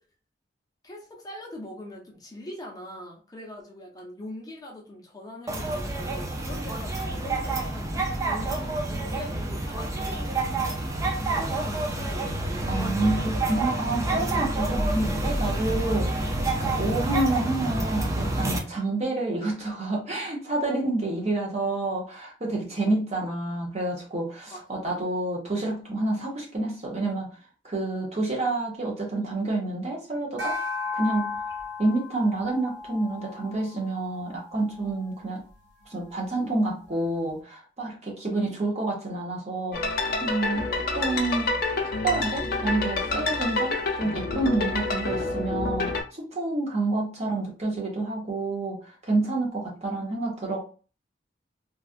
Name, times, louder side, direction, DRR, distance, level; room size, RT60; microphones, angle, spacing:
voice 1, 0.8-7.9 8.2-10.5 11.0-12.4 24.5-24.9, left 1 dB, 20° left, -2 dB, 0.7 m, -42 dB
sound 1, 5.5-18.6, right 2 dB, 20° right, 0.4 m, -28 dB
voice 2, 12.7-16.3 16.6-27.3 27.6-30.6 30.9-31.3 31.8-35.4 35.9-41.5 42.0-48.8 49.0-50.6, right 2 dB, 40° right, -2 dB, 0.9 m, -28 dB
sound 2, 30.4-35.0, left 4 dB, 80° right, 0.7 m, -35 dB
sound 3, 39.7-46.0, left 3 dB, 55° left, 0.6 m, -28 dB
3.2 x 2.3 x 2.5 m, 0.38 s
head